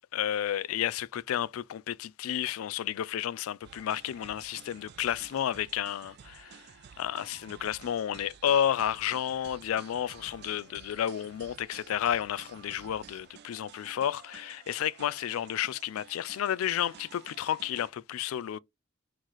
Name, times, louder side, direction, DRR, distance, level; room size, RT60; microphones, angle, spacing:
voice 1, 0.1-6.6 7.0-18.6, left 10 dB, 85° left, 0.3 m, -31 dB
sound 1, 3.6-17.9, right 8 dB, 50° right, 0.3 m, -53 dB
4.4 x 3.1 x 3.8 m
head